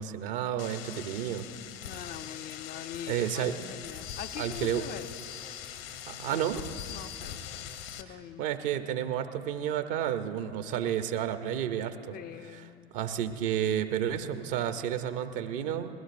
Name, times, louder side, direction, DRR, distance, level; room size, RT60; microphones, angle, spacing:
voice 1, 0.0-1.4 3.1-3.6 4.4-4.8 6.1-6.6 8.1-12.2 12.4-12.7 12.9-15.9, right 10 dB, 60° right, 9 dB, 0.9 m, -31 dB
sound 1, 0.6-8.0, left 9 dB, 65° left, 1.0 m, -42 dB
voice 2, 1.9-5.1 6.3-6.4 6.9-7.7 8.0-8.5 12.1-12.9, left 10 dB, 30° left, 9 dB, 0.4 m, -43 dB
21.0 x 15.5 x 2.6 m, 2.5 s
figure-of-eight pair, 65°, 32 cm